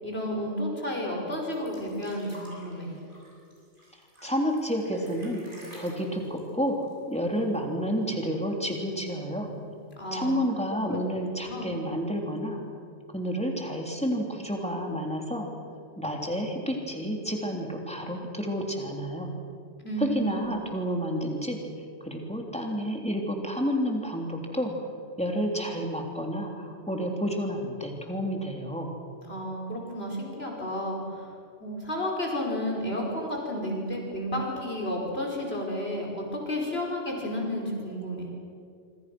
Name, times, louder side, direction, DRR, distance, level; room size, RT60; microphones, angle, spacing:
voice 1, 0.0-2.9 10.0-10.3 10.9-11.0 11.4-11.7 19.8-20.5 29.3-31.3 31.6-38.3, equal, 60° left, -1 dB, 5.5 m, -32 dB
sound 1, 1.3-7.7 8.0-8.1 8.4-9.1 9.9-10.0, left 1 dB, 45° right, 7.7 m, -50 dB
voice 2, 4.2-6.8 7.1-9.5 10.1-12.6 13.1-15.5 16.0-19.3 20.0-21.6 22.0-24.9 25.2-28.9, equal, 5° left, 1 dB, 3.5 m, -30 dB
26.5 x 25.5 x 6.3 m, 2.4 s
omnidirectional pair, 1.2 m